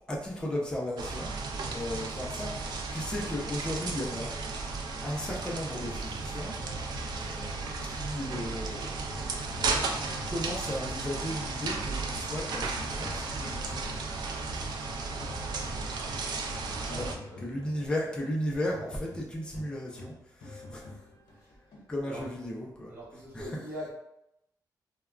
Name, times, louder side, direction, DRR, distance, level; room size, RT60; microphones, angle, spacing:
voice 1, 0.1-1.3 1.7-4.3 5.0-6.5 7.1-9.3 10.3-13.8 14.3-14.4 16.9-17.1 17.4-20.9 21.9-22.9, left 1 dB, 10° left, -2 dB, 0.4 m, -35 dB
sound 1, 1.0-17.2, right 3 dB, 75° right, 0.4 m, -34 dB
sound 2, 6.6-11.4 11.7-22.3, left 2 dB, 80° left, 0.6 m, -49 dB
voice 2, 15.1-16.1 16.6-17.8 21.3-22.3 22.9-23.9, left 1 dB, 20° right, -8 dB, 1.0 m, -45 dB
3.4 x 2.1 x 2.3 m, 0.83 s
wide cardioid pair, 170°, 7 cm